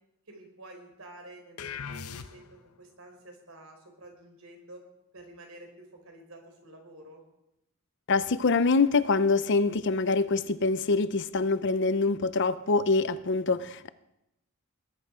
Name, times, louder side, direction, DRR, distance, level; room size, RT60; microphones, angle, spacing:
voice 1, 0.3-2.5 2.8-4.8 5.1-7.2, right 1 dB, 70° right, 3 dB, 4.0 m, -50 dB
sound 1, 1.6-2.7, left 6 dB, 85° left, 0.9 m, -39 dB
voice 2, 8.1-13.9, left 3 dB, 55° left, 14 dB, 0.6 m, -25 dB
20.0 x 10.5 x 5.0 m, 0.86 s
head